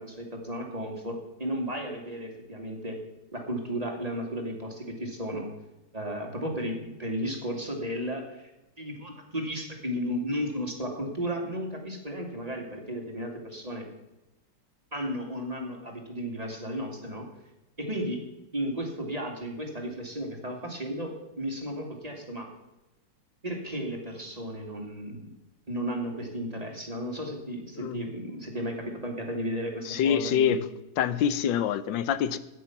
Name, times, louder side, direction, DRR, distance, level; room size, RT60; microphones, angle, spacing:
voice 1, 0.0-3.0 3.3-5.5 5.9-8.5 8.8-13.8 14.9-17.3 17.8-18.2 18.5-22.5 23.4-25.3 25.7-30.6, equal, 20° right, 2 dB, 2.3 m, -34 dB
voice 2, 29.8-30.7 31.0-32.4, left 8 dB, 85° left, 14 dB, 1.4 m, -26 dB
14.0 x 9.6 x 5.9 m, 1.0 s
omnidirectional pair, 2.0 m